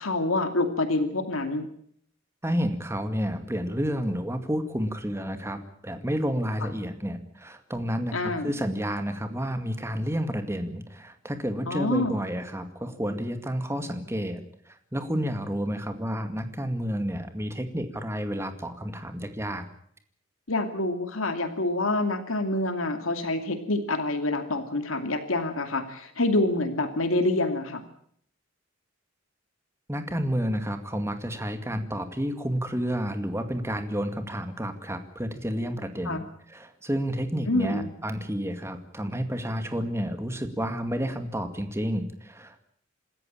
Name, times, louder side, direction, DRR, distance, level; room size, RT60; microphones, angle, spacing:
voice 1, 0.0-1.7 8.1-8.5 11.7-12.2 20.5-27.8 36.0-36.2 37.5-37.9, left 2 dB, 80° left, 7 dB, 2.6 m, -27 dB
voice 2, 2.4-19.7 29.9-42.6, equal, 15° right, 8 dB, 2.2 m, -30 dB
27.0 x 14.0 x 8.8 m, 0.66 s
head